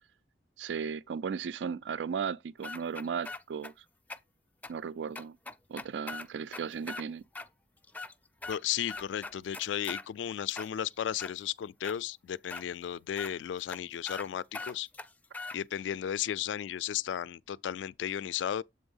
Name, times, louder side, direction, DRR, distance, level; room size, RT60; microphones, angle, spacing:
voice 1, 0.6-3.8 4.7-5.4 5.7-7.2, right 6 dB, 75° right, 0.3 m, -36 dB
sound 1, 2.6-3.7 4.1-4.2 4.6-4.7 5.1-7.0 7.3-7.5 7.8-8.6 8.9-10.1 10.5-11.3 11.8-12.0 12.5-12.6 13.2-13.3 13.7-13.8 14.1-14.3 14.5-15.6, left 3 dB, 10° left, 0.4 m, -41 dB
voice 2, 8.5-14.9 15.5-18.6, left 10 dB, 90° left, 0.3 m, -34 dB
7.6 x 3.5 x 5.4 m
head